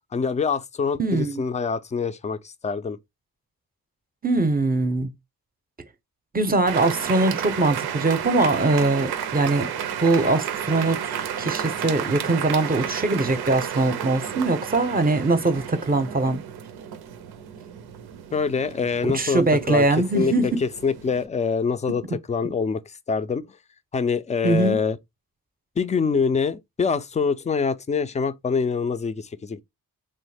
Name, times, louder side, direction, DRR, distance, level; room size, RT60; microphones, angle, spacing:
voice 1, 0.1-3.0 18.3-22.0 22.3-23.5 23.9-25.0 25.8-29.6, left 5 dB, 20° left, 0.3 m, -25 dB
voice 2, 1.0-1.4 4.2-5.1 6.3-9.7 10.0-16.4 19.0-20.5 24.4-24.8, right 2 dB, 25° right, 0.6 m, -22 dB
sound 1, 6.6-21.3, right 9 dB, 85° right, 0.5 m, -32 dB
3.1 x 2.0 x 3.3 m
cardioid pair, 55°, 37 cm